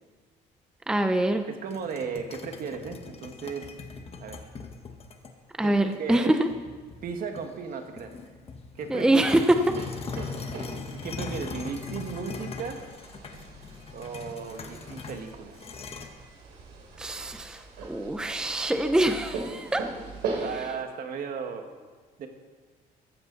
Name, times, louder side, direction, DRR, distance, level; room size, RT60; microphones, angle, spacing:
voice 1, 0.9-1.5 5.6-6.5 8.9-9.8 17.0-19.9 20.3-20.4, right 1 dB, 5° right, 7 dB, 0.7 m, -24 dB
voice 2, 1.5-3.8 4.2-4.4 5.6-6.3 7.0-8.1 8.8-9.2 10.3-12.8 13.9-15.7 20.4-21.7 22.2-22.3, right 6 dB, 60° right, 4 dB, 1.9 m, -36 dB
sound 1, 1.7-5.3 5.9-6.0 6.5-7.6 8.0-16.1, left 4 dB, 35° left, 1.5 m, -40 dB
sound 2, 9.4-20.6, right 4 dB, 80° right, 3.3 m, -40 dB
15.5 x 14.0 x 4.2 m, 1.4 s
cardioid pair, 110°, 17 cm